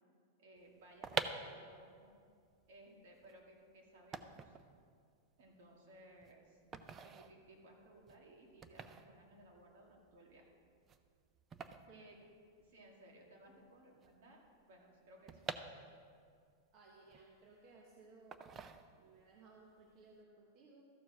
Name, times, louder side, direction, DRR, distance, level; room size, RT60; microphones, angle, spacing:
voice 1, 0.4-2.2 2.7-4.6 5.4-6.6 7.0-10.5 11.9-12.3 12.6-15.4, right 1 dB, 65° right, -1 dB, 2.2 m, -61 dB
Wooden frame handling, 0.8-12.9 13.2-13.3 13.4-16.3 16.7-17.8 18.3-19.3 19.7-19.9, right 6 dB, 20° right, 0.4 m, -47 dB
voice 2, 16.7-18.5 19.0-20.8, right 3 dB, 35° right, -1 dB, 1.0 m, -61 dB
13.5 x 4.6 x 6.4 m, 2.1 s
supercardioid pair, 160°, 0 cm